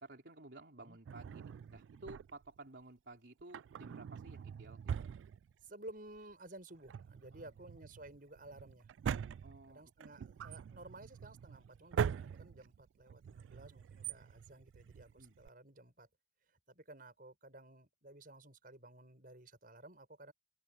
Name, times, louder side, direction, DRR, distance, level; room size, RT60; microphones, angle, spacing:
voice 1, 0.0-5.1 7.3-7.5 9.4-10.2 15.1-15.4, right 2 dB, 70° right, 3.5 m, -54 dB
Drawer open or close, 1.1-2.6 3.4-5.9 6.2-6.3 6.7-15.5, right 7 dB, 90° right, 0.3 m, -43 dB
voice 2, 5.6-8.9 9.7-16.1 16.7-20.3, right 2 dB, 50° right, 6.8 m, -54 dB
open air
head